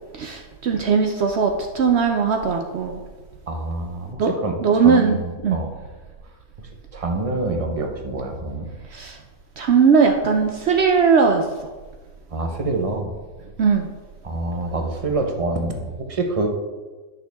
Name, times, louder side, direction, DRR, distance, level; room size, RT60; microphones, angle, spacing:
voice 1, 0.1-3.0 4.2-4.3 4.6-5.6 8.9-9.2 9.6-11.5 13.6-13.9, right 5 dB, 80° right, 3 dB, 0.5 m, -19 dB
voice 2, 3.5-5.8 6.9-8.7 12.3-13.1 14.2-16.5, right 2 dB, 30° right, 3 dB, 0.7 m, -26 dB
10.5 x 6.4 x 3.5 m, 1.3 s
omnidirectional pair, 1.9 m